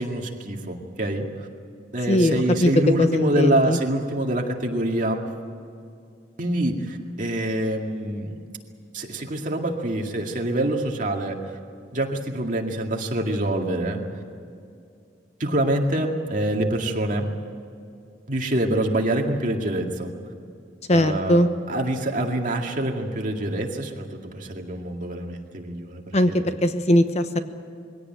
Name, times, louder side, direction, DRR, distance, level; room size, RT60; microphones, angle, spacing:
voice 1, 0.0-1.5 1.9-5.2 6.4-8.3 8.9-11.4 11.9-14.0 15.4-17.3 18.3-20.1 20.9-26.0 26.3-26.5, right 1 dB, 45° right, 2 dB, 2.2 m, -25 dB
voice 2, 3.0-3.8 20.9-21.5 26.1-27.4, left 1 dB, 40° left, 9 dB, 0.9 m, -20 dB
22.0 x 17.0 x 9.1 m, 2.4 s
head